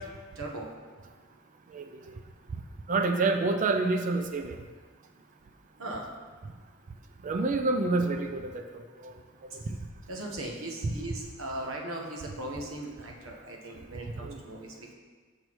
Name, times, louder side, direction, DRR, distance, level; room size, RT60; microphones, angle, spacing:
voice 1, 0.4-0.7 5.8-6.1 10.1-14.9, right 1 dB, 90° right, 0 dB, 1.0 m, -38 dB
voice 2, 1.7-2.2 2.9-4.6 7.2-9.2 9.5-9.8 14.2-14.4, right 3 dB, 40° right, 6 dB, 0.3 m, -28 dB
6.6 x 6.0 x 3.0 m, 1.5 s
head